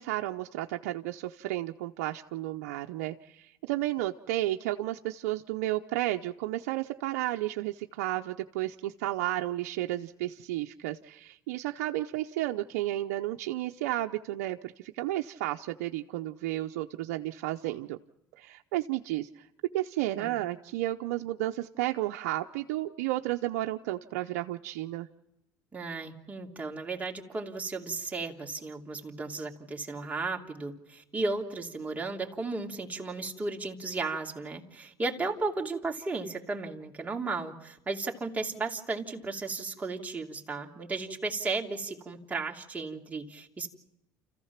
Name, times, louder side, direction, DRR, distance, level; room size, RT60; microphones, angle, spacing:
voice 1, 0.0-18.0 18.4-19.5 19.7-25.1, right 15 dB, 85° right, 4 dB, 0.7 m, -32 dB
voice 2, 25.7-43.7, right 3 dB, 20° right, 0 dB, 2.8 m, -35 dB
29.5 x 15.0 x 5.9 m, 0.89 s
supercardioid pair, 95°, 9 cm